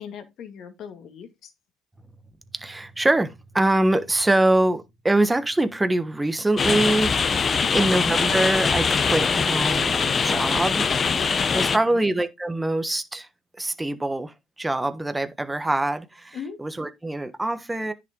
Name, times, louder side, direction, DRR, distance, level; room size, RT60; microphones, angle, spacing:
voice 1, 0.0-1.5 7.6-7.8 11.5-12.1 16.3-16.6, left 7 dB, 50° left, 2.2 m, -38 dB
voice 2, 2.6-10.9 11.5-13.3 13.6-17.9, right 2 dB, 10° right, 1.2 m, -24 dB
sound 1, 6.6-11.8, left 5 dB, 30° left, 0.9 m, -22 dB
10.0 x 6.1 x 3.8 m
cardioid pair, 120°, 0 cm